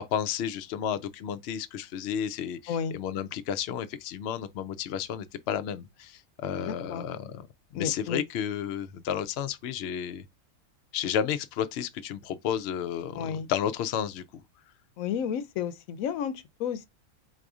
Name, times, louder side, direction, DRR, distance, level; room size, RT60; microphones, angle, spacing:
voice 1, 0.0-7.5 7.7-10.2 10.9-14.4, left 9 dB, 65° left, 0.8 m, -32 dB
voice 2, 6.5-7.1 7.7-8.2 13.1-13.5 15.0-16.9, left 7 dB, 90° left, 1.0 m, -32 dB
4.1 x 2.5 x 4.7 m
omnidirectional pair, 1.4 m